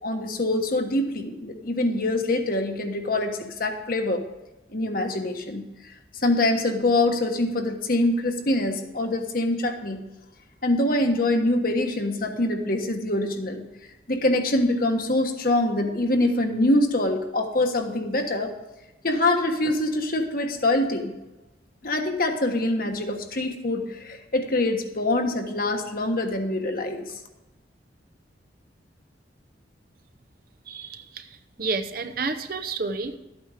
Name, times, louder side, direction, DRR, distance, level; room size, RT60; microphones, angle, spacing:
voice 1, 0.0-4.2 4.7-5.6 6.2-10.0 10.6-13.6 14.1-18.5 19.0-21.1 21.8-27.1, left 1 dB, 50° left, 4 dB, 1.3 m, -24 dB
voice 2, 30.7-33.2, right 4 dB, 55° right, 9 dB, 0.8 m, -30 dB
12.5 x 8.7 x 5.0 m, 1.0 s
head